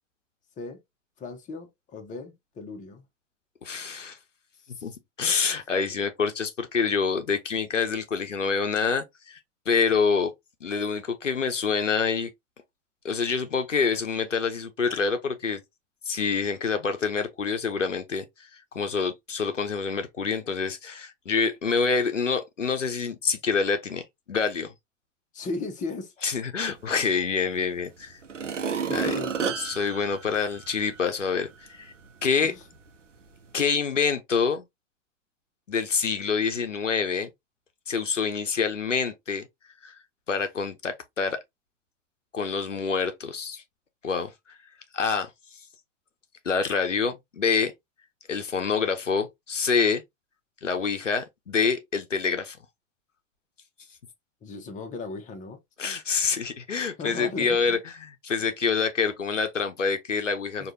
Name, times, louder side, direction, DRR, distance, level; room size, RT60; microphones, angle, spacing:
voice 1, 1.2-3.0 4.7-4.9 5.7-6.0 25.3-26.1 28.9-29.5 32.4-32.6 54.4-55.6 57.0-57.8, left 3 dB, 20° left, 0.9 m, -37 dB
voice 2, 3.6-4.2 4.8-4.9 5.2-9.4 9.7-10.3 10.6-12.3 13.0-15.6 16.1-18.5 18.7-24.7 26.2-28.2 28.9-29.1 29.6-31.9 32.2-32.5 33.5-34.6 35.7-37.3 37.9-39.5 39.8-40.0 40.3-41.4 42.3-43.6 44.0-44.3 44.9-45.3 46.4-47.7 48.3-50.0 50.6-52.6 55.8-60.7, left 5 dB, 85° left, 0.7 m, -26 dB
sound 1, 27.5-27.6 28.2-31.1 31.6-31.7, right 6 dB, 80° right, 0.7 m, -31 dB
4.8 x 2.5 x 2.6 m
figure-of-eight pair, 90°, 36 cm